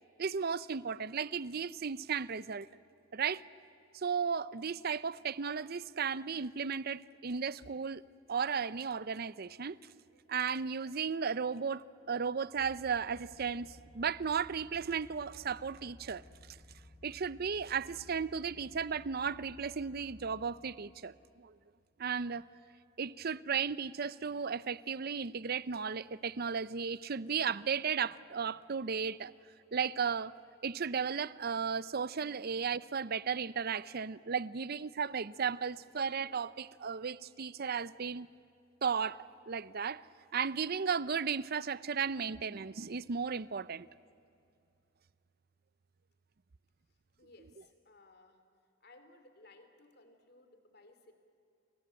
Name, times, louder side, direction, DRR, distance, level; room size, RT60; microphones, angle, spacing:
voice 1, 0.2-2.7 3.1-3.4 3.9-8.0 8.3-9.8 10.3-13.7 13.9-16.2 17.0-21.5 22.0-22.4 23.0-29.3 29.7-30.3 30.6-38.3 38.8-40.0 40.3-43.9, right 6 dB, 50° right, 0.6 m, -35 dB
sound 1, 12.6-20.5, left 1 dB, 30° left, 5.3 m, -57 dB
voice 2, 47.2-48.4 48.8-51.1, left 2 dB, 55° left, 3.0 m, -60 dB
29.5 x 22.5 x 8.8 m
head